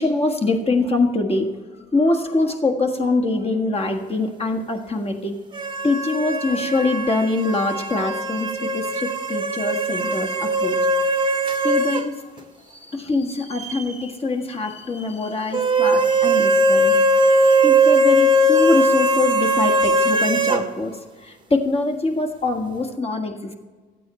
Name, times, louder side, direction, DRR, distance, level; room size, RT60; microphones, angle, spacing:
voice 1, 0.0-1.5 1.9-5.4 5.8-10.9 11.4-12.2 12.7-17.0 17.3-23.5, left 2 dB, 30° left, 2 dB, 1.6 m, -24 dB
sound 1, 5.5-12.1 12.4-12.5 15.5-20.6, right 1 dB, 25° right, 1.0 m, -19 dB
13.0 x 8.6 x 4.3 m, 1.4 s
cardioid pair, 90°, 20 cm